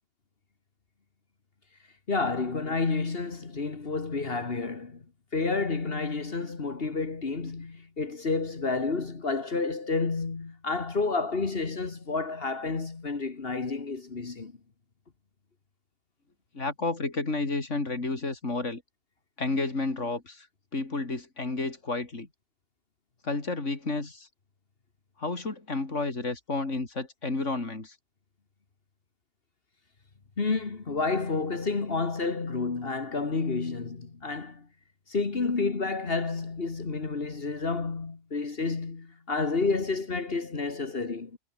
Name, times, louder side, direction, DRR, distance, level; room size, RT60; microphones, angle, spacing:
voice 1, 2.1-5.1 5.3-14.6 30.4-34.7 35.1-41.4, left 4 dB, 50° left, 2.0 m, -30 dB
voice 2, 16.5-18.8 19.4-20.5 20.7-22.3 23.2-24.3 25.2-28.0, left 3 dB, 80° left, 3.9 m, -31 dB
omnidirectional pair, 1.2 m